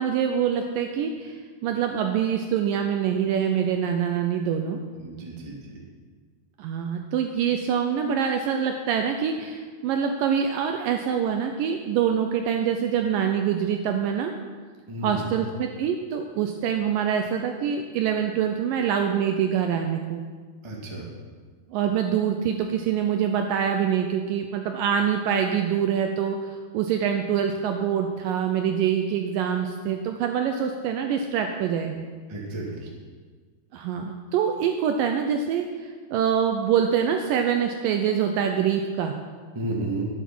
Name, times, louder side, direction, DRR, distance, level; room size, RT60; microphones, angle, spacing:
voice 1, 0.0-4.8 6.6-14.3 15.0-20.2 21.7-32.0 33.7-39.2, right 8 dB, 85° right, 5 dB, 2.0 m, -25 dB
voice 2, 5.0-5.8 14.9-15.4 20.6-21.1 32.3-32.9 39.5-40.1, right 2 dB, 35° right, -2 dB, 0.4 m, -32 dB
12.0 x 9.5 x 6.0 m, 1.5 s
omnidirectional pair, 4.6 m